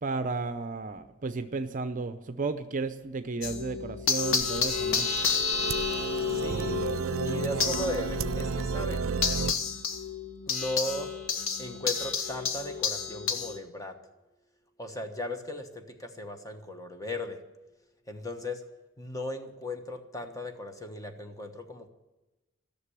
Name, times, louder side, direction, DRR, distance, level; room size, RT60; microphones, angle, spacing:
voice 1, 0.0-5.1, right 3 dB, 40° right, 10 dB, 0.6 m, -33 dB
sound 1, 3.4-13.6, left 6 dB, 75° left, 1.2 m, -31 dB
sound 2, 4.4-9.5, right 5 dB, 85° right, 0.5 m, -32 dB
voice 2, 6.3-6.8 7.2-9.0 10.5-11.1 11.6-14.0 14.8-17.4 18.1-18.6 19.0-21.9, left 1 dB, 15° left, 5 dB, 1.2 m, -37 dB
14.5 x 6.8 x 9.8 m, 1.1 s
head